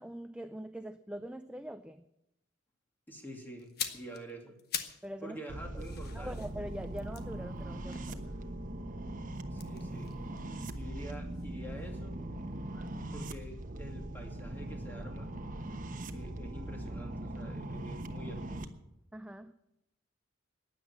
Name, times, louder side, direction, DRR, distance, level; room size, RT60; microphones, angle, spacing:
voice 1, 0.0-2.0 5.0-5.4 6.1-8.8 19.1-19.5, right 1 dB, 5° right, 9 dB, 0.5 m, -43 dB
voice 2, 3.1-4.5 5.2-6.4 9.5-10.1 10.8-12.2 12.7-12.8 13.1-15.3 16.1-18.7, right 1 dB, 10° left, 1 dB, 2.6 m, -47 dB
sound 1, 3.6-5.1 5.4-8.7 9.5-11.5 11.8-12.0, left 8 dB, 55° left, 1.3 m, -43 dB
sound 2, 5.5-18.7, right 1 dB, 45° right, 1.1 m, -40 dB
15.5 x 10.0 x 7.3 m, 0.83 s
head